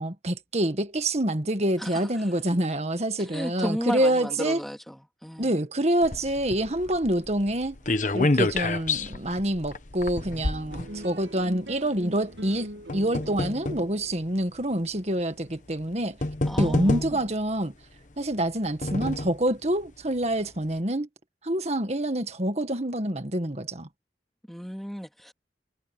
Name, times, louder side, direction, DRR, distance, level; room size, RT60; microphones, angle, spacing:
voice 1, 0.0-4.6 5.4-7.8 8.1-16.2 16.6-17.7 18.2-21.1 21.4-23.9, right 1 dB, 40° right, 1.8 m, -27 dB
voice 2, 3.2-5.6 16.4-17.2 24.5-25.3, equal, ahead, 3.1 m, -34 dB
sound 1, 6.0-11.5 12.3-13.9 14.7-14.8 15.8-15.9 16.2-17.4 18.3-19.4 19.9-20.0 20.2-20.3, left 2 dB, 45° left, 1.1 m, -29 dB
sound 2, 10.2-16.8, right 1 dB, 85° right, 1.6 m, -43 dB
head